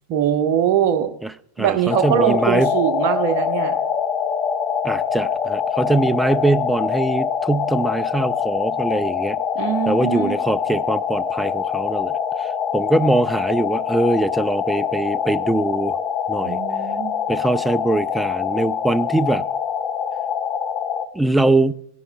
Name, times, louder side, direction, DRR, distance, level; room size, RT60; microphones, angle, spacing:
voice 1, 0.1-1.1 1.6-3.7 9.5-10.3 16.4-17.2, right 9 dB, 45° right, 1.0 m, -21 dB
voice 2, 1.6-2.7 4.8-9.4 9.9-16.0 16.3-16.6 17.3-19.4 21.1-21.7, right 2 dB, 5° right, 0.3 m, -22 dB
sound 1, 1.9-21.0, left 7 dB, 25° left, 0.9 m, -24 dB
17.0 x 10.5 x 2.2 m
figure-of-eight pair, 90°, 0 cm